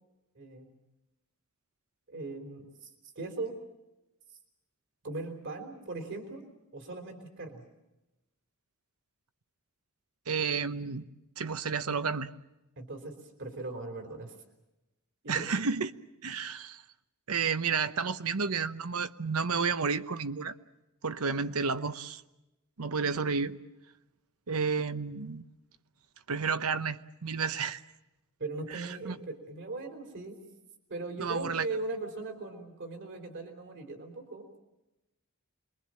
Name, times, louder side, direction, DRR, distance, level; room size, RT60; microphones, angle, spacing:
voice 1, 0.4-0.7 2.1-2.9 3.2-3.6 5.0-6.4 6.7-7.6 12.8-14.3 15.2-15.5 28.4-30.4 30.9-34.5, right 3 dB, 55° right, 5 dB, 3.6 m, -39 dB
voice 2, 10.3-11.1 11.4-12.3 15.3-15.9 16.2-16.8 17.3-20.5 21.0-22.2 22.8-23.6 24.5-25.4 26.3-27.8 28.7-29.2 31.2-31.7, right 5 dB, 75° right, 12 dB, 0.9 m, -31 dB
27.0 x 22.5 x 7.6 m, 0.97 s
head